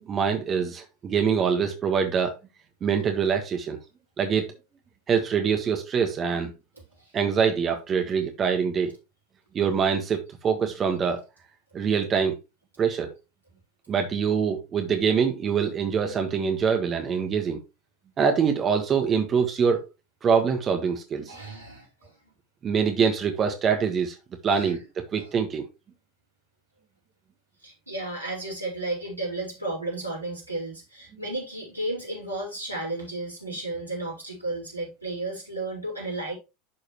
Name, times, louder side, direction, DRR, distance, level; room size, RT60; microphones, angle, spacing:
voice 1, 0.0-2.3 2.8-3.8 4.2-4.5 5.1-6.5 7.1-8.9 9.5-11.2 11.7-12.4 12.8-13.1 13.9-17.6 18.2-19.9 20.2-21.3 22.6-24.1 24.4-24.8 25.1-25.6, right 6 dB, 30° right, 1.6 m, -24 dB
voice 2, 21.3-22.1 24.5-24.8 25.1-25.3 27.6-36.3, right 2 dB, 90° right, 4.4 m, -33 dB
11.5 x 4.8 x 3.2 m
figure-of-eight pair, 80°, 0 cm